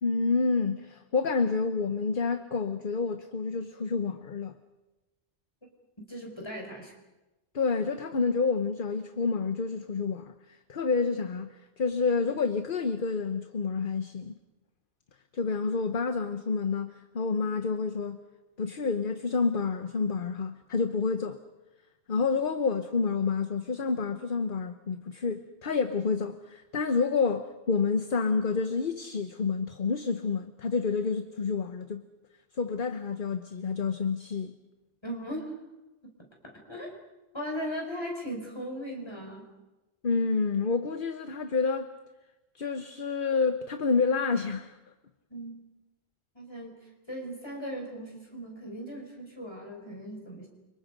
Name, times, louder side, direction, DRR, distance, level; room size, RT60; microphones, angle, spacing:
voice 1, 0.0-4.5 7.5-10.3 10.7-14.3 15.3-18.2 18.6-21.4 22.1-32.0 32.6-34.5 40.0-41.9 42.5-44.8, left 4 dB, 55° left, 1.2 m, -29 dB
voice 2, 6.1-6.9 35.0-35.6 36.0-36.1 36.4-36.9 37.3-39.4 45.3-45.6 46.4-46.8 47.1-50.5, equal, 25° left, 5.3 m, -38 dB
29.5 x 25.5 x 5.3 m
omnidirectional pair, 1.1 m